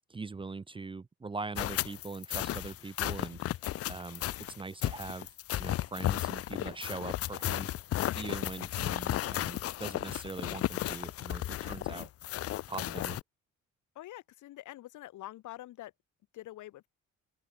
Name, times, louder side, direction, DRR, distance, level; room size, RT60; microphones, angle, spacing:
voice 1, 0.1-3.4 3.9-5.3 5.6-7.7 8.2-12.1 12.7-13.2, right 3 dB, 15° right, 0.5 m, -42 dB
sound 1, 1.6-13.2, left 13 dB, 50° left, 0.4 m, -34 dB
voice 2, 13.9-15.9 16.3-16.9, left 15 dB, 80° left, 1.2 m, -46 dB
open air
cardioid pair, 90°, 30 cm